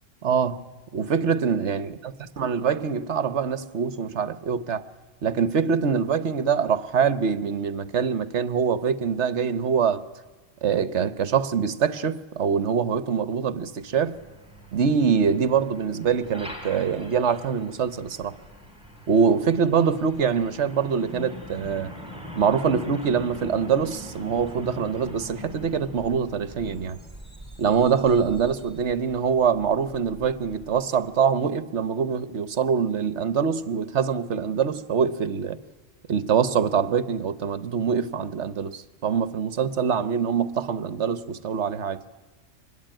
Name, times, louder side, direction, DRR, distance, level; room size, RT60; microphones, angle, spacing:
voice 1, 0.2-0.6 0.9-2.0 2.4-4.8 5.2-10.0 10.6-14.2 14.7-18.4 19.1-21.9 22.3-27.0 27.6-35.6 36.1-42.0, right 6 dB, 60° right, 1.3 m, -24 dB
Truck, 13.5-31.2, equal, 5° right, 4.8 m, -43 dB
25.5 x 21.0 x 9.0 m
omnidirectional pair, 1.3 m